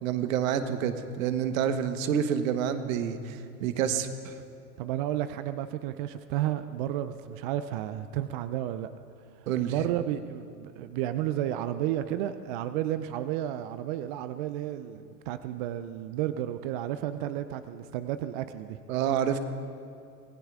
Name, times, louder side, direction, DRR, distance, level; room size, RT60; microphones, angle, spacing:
voice 1, 0.0-4.3 9.5-9.8 18.9-19.4, right 8 dB, 55° right, 9 dB, 1.2 m, -28 dB
voice 2, 4.8-8.9 9.7-18.8, right 12 dB, 35° right, 11 dB, 0.4 m, -32 dB
26.0 x 19.0 x 2.5 m, 2.4 s
figure-of-eight pair, 95°, 48 cm